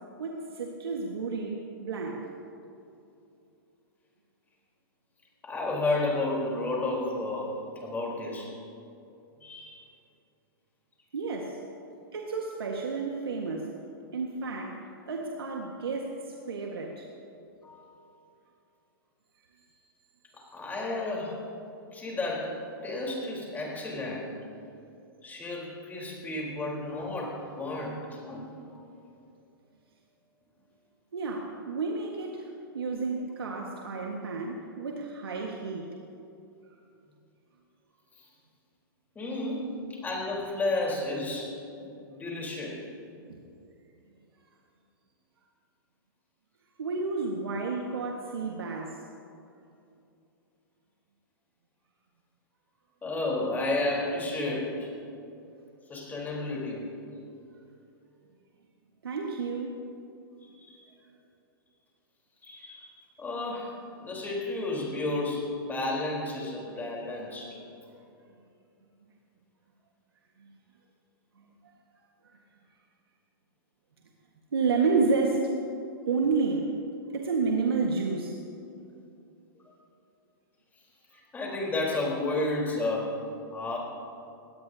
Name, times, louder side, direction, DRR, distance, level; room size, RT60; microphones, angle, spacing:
voice 1, 0.2-2.3 11.1-11.6 12.1-13.8 14.1-17.1 31.1-32.5 32.7-35.9 43.3-43.4 46.8-49.0 59.0-59.8 70.4-70.5 74.5-75.4 76.1-76.7 77.1-78.4, right 4 dB, 90° right, 0 dB, 1.6 m, -30 dB
voice 2, 5.4-7.5 7.8-8.6 9.4-9.8 17.6-18.0 20.5-21.4 21.9-24.3 25.2-28.8 39.2-41.5 41.8-42.8 53.0-54.9 55.9-56.9 60.6-60.8 62.4-62.9 63.2-67.6 75.0-75.3 79.7-79.8 81.3-83.2 83.5-83.8, left 2 dB, 15° left, -2 dB, 4.0 m, -32 dB
21.0 x 17.5 x 2.8 m, 2.7 s
hypercardioid pair, 130°, 12 cm